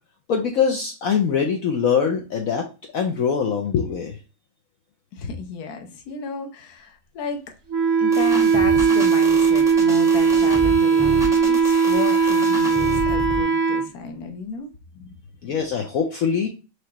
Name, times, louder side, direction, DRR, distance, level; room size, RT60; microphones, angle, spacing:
voice 1, 0.3-2.7 2.9-4.1 15.4-16.5, left 6 dB, 80° left, 3 dB, 0.7 m, -23 dB
voice 2, 5.1-7.5 8.0-14.7, left 4 dB, 60° left, 5 dB, 1.1 m, -33 dB
Wind instrument woodwind instrument, 7.7-13.9, right 6 dB, 85° right, 0.7 m, -18 dB
sound 1, 8.1-13.4, right 1 dB, 5° right, 0.4 m, -32 dB
4.9 x 3.1 x 2.8 m, 0.32 s
omnidirectional pair, 2.3 m